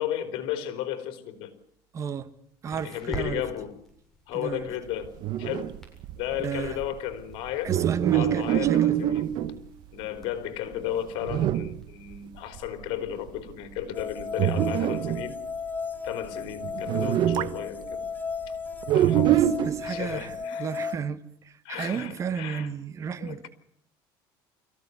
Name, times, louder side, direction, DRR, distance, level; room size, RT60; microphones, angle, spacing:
voice 1, 0.0-1.5 2.8-3.7 4.3-5.1 5.4-5.7 6.2-7.7 8.1-9.3 9.9-15.4 16.0-18.1 18.9-19.4 19.8-20.7 21.6-22.7 23.2-23.5, left 11 dB, 70° left, 3.8 m, -34 dB
sound 1, 1.3-13.7, equal, 5° left, 7.7 m, -48 dB
voice 2, 1.9-2.3 2.6-3.4 4.3-4.7 6.4-6.8 7.6-9.0 19.3-23.5, right 7 dB, 35° right, 1.5 m, -33 dB
sound 2, 5.0-9.7 10.2-10.3 10.7-10.8 11.2-11.9 12.2-12.3 12.5-12.8 13.3-13.5 14.0-15.3 16.2-16.3 16.6-17.6 18.8-19.9, right 11 dB, 60° right, 1.1 m, -25 dB
sound 3, 13.9-21.0, left 5 dB, 20° left, 1.4 m, -35 dB
25.5 x 16.0 x 9.7 m
cardioid pair, 125°, 9 cm